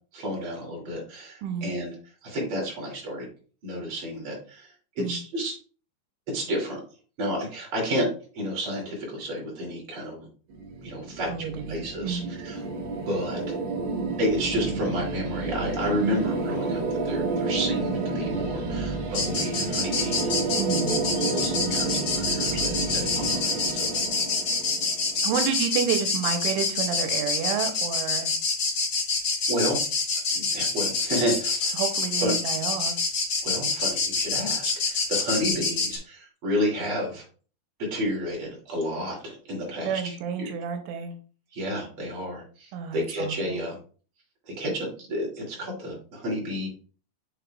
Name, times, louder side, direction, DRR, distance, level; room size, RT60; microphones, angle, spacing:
voice 1, 0.1-1.9 2.2-3.2 3.6-4.7 5.1-5.5 6.3-6.8 7.2-8.1 8.3-10.3 10.8-13.6 14.2-20.8 21.3-22.7 23.1-23.9 29.5-29.8 30.3-31.7 32.2-32.3 33.4-37.2 37.9-40.5 41.5-43.8 44.6-46.7, equal, 30° right, -2 dB, 3.1 m, -31 dB
voice 2, 1.4-1.7 5.0-5.2 11.3-12.3 16.0-16.2 20.6-21.1 22.4-22.9 25.2-28.3 31.7-33.0 39.8-41.1 42.7-43.6, right 7 dB, 90° right, 6 dB, 3.2 m, -30 dB
sound 1, 10.5-25.5, right 3 dB, 65° right, 2.9 m, -30 dB
sound 2, 19.1-36.0, left 4 dB, 60° left, 1.3 m, -27 dB
6.9 x 6.8 x 2.4 m, 0.39 s
omnidirectional pair, 5.5 m